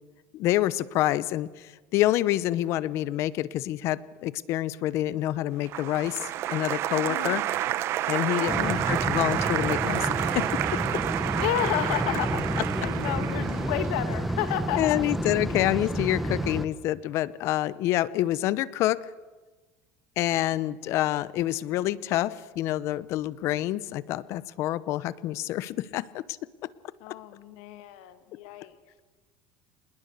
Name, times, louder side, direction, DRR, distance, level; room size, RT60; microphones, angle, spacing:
voice 1, 0.3-7.4 8.1-11.0 14.8-19.0 20.2-26.2 26.6-26.7, left 14 dB, 55° left, 18 dB, 0.8 m, -27 dB
Applause, 5.7-14.7, right 13 dB, 50° right, 0.9 m, -30 dB
voice 2, 7.1-7.5 8.4-8.9 11.4-12.4 12.8-15.0 27.0-28.7, left 12 dB, 85° left, 10 dB, 2.1 m, -32 dB
sound 1, 8.5-16.7, right 1 dB, 5° right, 1.2 m, -30 dB
26.5 x 20.5 x 6.7 m, 1.3 s
cardioid pair, 135°, 6 cm